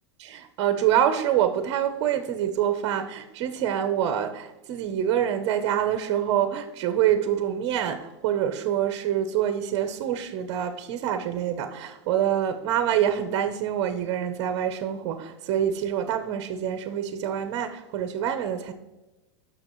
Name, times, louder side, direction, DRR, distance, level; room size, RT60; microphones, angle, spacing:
voice 1, 0.2-18.7, right 10 dB, 35° right, 8 dB, 0.6 m, -26 dB
16.5 x 6.2 x 3.0 m, 1.1 s
supercardioid pair, 170°, 15 cm